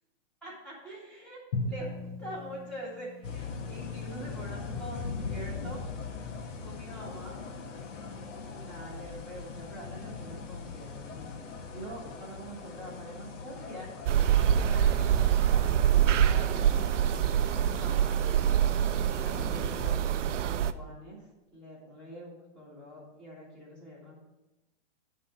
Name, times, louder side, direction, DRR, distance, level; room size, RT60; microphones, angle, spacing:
voice 1, 0.4-1.4 1.6-5.8 6.6-7.4 8.3-13.9 14.5-18.4 19.1-24.2, equal, ahead, -8 dB, 2.1 m, -45 dB
Drum, 1.5-4.5, left 2 dB, 30° left, 0.7 m, -38 dB
sound 1, 3.2-20.0, left 4 dB, 85° left, 1.4 m, -41 dB
sound 2, 14.1-20.7, right 10 dB, 80° right, 0.6 m, -25 dB
10.0 x 3.8 x 7.1 m, 1.0 s
hypercardioid pair, 175°, 36 cm